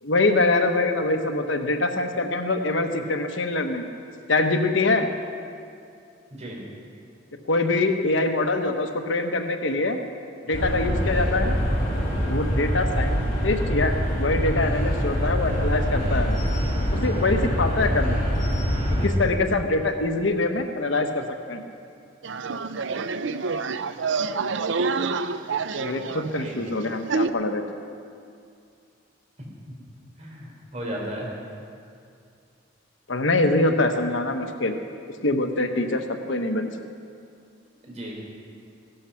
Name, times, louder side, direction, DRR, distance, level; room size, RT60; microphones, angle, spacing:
voice 1, 0.0-3.8 4.3-5.1 7.5-10.0 10.5-11.6 12.3-16.4 16.9-18.2 19.0-21.6 25.8-27.6 33.1-34.7 35.2-36.7, left 2 dB, 80° left, 6 dB, 1.1 m, -24 dB
sound 1, 10.5-19.1, equal, 45° left, 4.2 m, -24 dB
sound 2, 22.2-27.3, right 4 dB, 75° right, 0.6 m, -28 dB
voice 2, 30.2-31.3 37.8-38.1, right 1 dB, 35° right, -2 dB, 4.4 m, -34 dB
16.5 x 12.5 x 5.8 m, 2.4 s
head